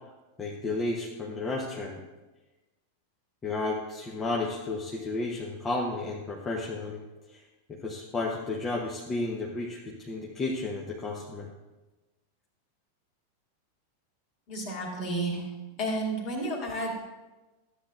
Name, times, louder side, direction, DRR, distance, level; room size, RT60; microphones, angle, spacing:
voice 1, 0.4-2.0 3.4-7.0 7.3-7.4 7.7-11.5, left 2 dB, 20° left, -2 dB, 1.0 m, -32 dB
voice 2, 14.5-15.5 15.8-16.9, right 1 dB, 45° left, 0 dB, 2.4 m, -31 dB
13.0 x 8.5 x 2.4 m, 1.1 s
figure-of-eight pair, 90°, 0 cm